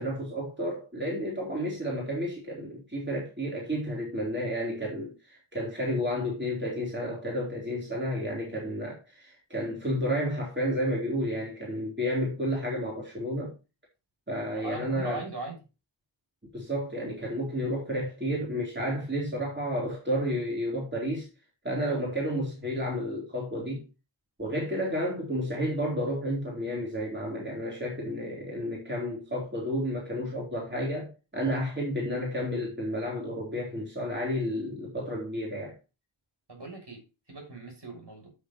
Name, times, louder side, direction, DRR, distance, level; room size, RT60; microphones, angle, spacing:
voice 1, 0.0-13.5 14.3-15.2 16.5-21.3 21.6-23.9 24.4-35.8, equal, 20° right, 3.9 m, -31 dB
voice 2, 14.5-15.6 36.5-38.3, right 3 dB, 55° right, 6.2 m, -40 dB
11.5 x 6.9 x 3.1 m
wide cardioid pair, 65°, 48 cm